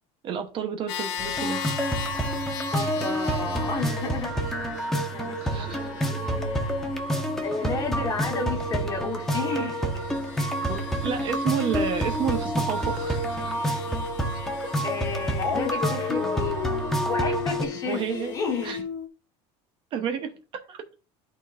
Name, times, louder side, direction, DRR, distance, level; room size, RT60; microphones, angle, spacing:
voice 1, 0.2-1.9 5.4-5.9 10.7-13.6 14.6-14.7 17.8-18.3 18.6-18.8 19.9-20.8, right 7 dB, 40° right, 0.8 m, -31 dB
sound 1, 0.9-18.8, left 9 dB, 90° left, 1.4 m, -40 dB
sound 2, 1.2-17.6, right 1 dB, 5° left, 0.9 m, -28 dB
voice 2, 2.7-4.7 5.1-6.6 7.4-10.1 14.8-16.7 17.0-18.9, left 4 dB, 30° left, 1.4 m, -32 dB
Dog, 15.4-19.1, left 10 dB, 50° left, 0.7 m, -33 dB
11.5 x 4.2 x 2.5 m
cardioid pair, 155°, 13 cm